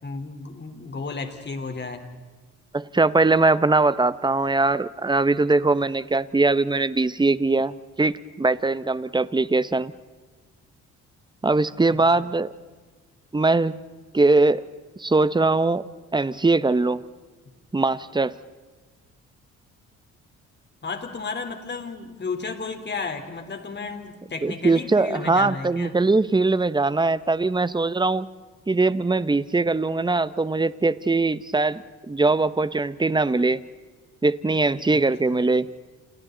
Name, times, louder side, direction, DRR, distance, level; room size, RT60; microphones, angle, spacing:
voice 1, 0.0-2.0 11.9-12.0 20.8-25.9 34.9-35.0 35.3-35.4, left 4 dB, 35° left, 6 dB, 3.8 m, -33 dB
voice 2, 2.7-9.9 11.4-12.5 13.3-13.8 14.1-14.6 15.0-15.9 16.1-17.0 17.7-18.3 24.4-28.3 28.7-33.6 34.2-35.7, right 3 dB, 15° right, 15 dB, 1.0 m, -21 dB
30.0 x 29.0 x 4.0 m, 1.3 s
cardioid pair, 90°, 30 cm